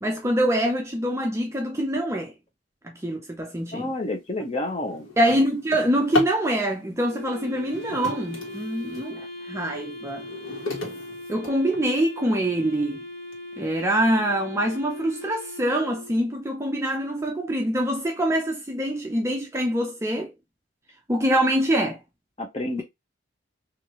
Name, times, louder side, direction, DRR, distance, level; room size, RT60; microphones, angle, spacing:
voice 1, 0.0-2.3 2.8-3.9 5.2-10.2 11.3-13.0 13.6-20.3 21.1-22.0, right 1 dB, 15° right, 0.5 m, -25 dB
voice 2, 3.7-5.1 22.4-22.8, left 2 dB, 30° left, 0.9 m, -29 dB
Drawer open or close, 3.8-4.0 4.5-6.5 7.5-9.1 9.6-12.1 12.7-12.8 13.3-13.4 13.8-14.2, left 3 dB, 80° left, 1.3 m, -34 dB
Wind instrument woodwind instrument, 7.1-16.3, left 1 dB, 50° left, 1.5 m, -39 dB
3.2 x 2.6 x 2.9 m
head